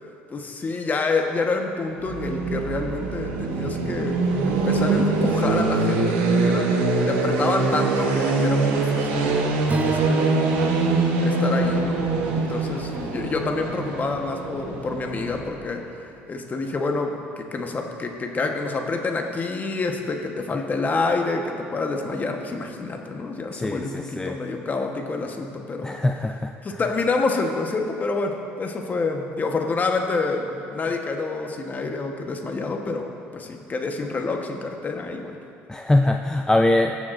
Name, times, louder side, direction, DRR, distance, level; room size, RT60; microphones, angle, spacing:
voice 1, 0.3-4.2 4.4-6.7 7.0-9.3 9.8-26.0 26.6-35.4, left 3 dB, 30° left, 3 dB, 1.2 m, -28 dB
sound 1, 1.9-15.8, right 3 dB, 90° right, 1.0 m, -24 dB
Strum, 9.7-14.0, right 4 dB, 30° right, 0.6 m, -30 dB
voice 2, 23.5-24.4 25.8-26.5 35.7-37.0, left 1 dB, 10° left, 5 dB, 0.4 m, -22 dB
18.5 x 7.0 x 2.6 m, 2.6 s
supercardioid pair, 85°, 5 cm